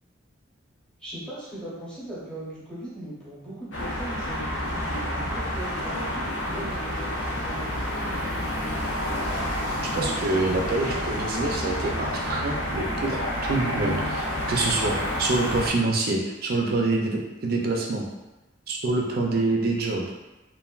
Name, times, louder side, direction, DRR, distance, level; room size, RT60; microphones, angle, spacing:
voice 1, 1.0-9.0, right 1 dB, 5° left, -10 dB, 0.8 m, -39 dB
sound 1, 3.7-15.7, left 1 dB, 75° left, 0.6 m, -29 dB
voice 2, 9.8-18.1 18.7-20.1, right 2 dB, 50° right, 0 dB, 0.4 m, -26 dB
3.1 x 2.2 x 2.3 m, 1.0 s
head